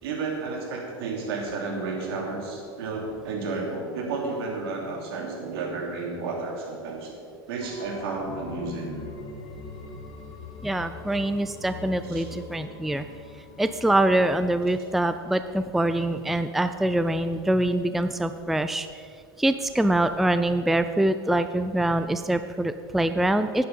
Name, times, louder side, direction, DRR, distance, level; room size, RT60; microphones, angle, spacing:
voice 1, 0.0-7.2 7.5-9.0 12.1-12.2, right 3 dB, 70° right, 0 dB, 3.2 m, -32 dB
sound 1, 7.6-17.0 17.3-17.4, left 4 dB, 50° left, 1.9 m, -43 dB
voice 2, 10.6-13.1 13.6-19.0 19.4-23.6, right 1 dB, ahead, 10 dB, 0.4 m, -24 dB
11.5 x 9.5 x 5.5 m, 2.2 s
hypercardioid pair, 95°, 13 cm